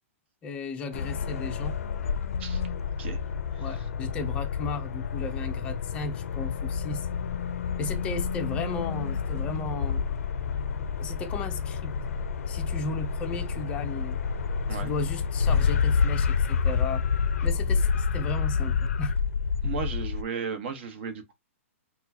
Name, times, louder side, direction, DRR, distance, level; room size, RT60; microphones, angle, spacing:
voice 1, 0.4-1.8 3.6-7.1 7.8-10.1 11.0-11.9 12.5-14.2 14.7-17.0 17.4-19.1, left 3 dB, 15° left, 0.4 m, -35 dB
sound 1, 0.9-20.2, left 6 dB, 75° left, 0.4 m, -28 dB
voice 2, 3.5-3.9 14.7-14.9 19.6-21.3, right 6 dB, 50° right, 1.1 m, -35 dB
4.3 x 2.3 x 2.7 m
hypercardioid pair, 160°, 8 cm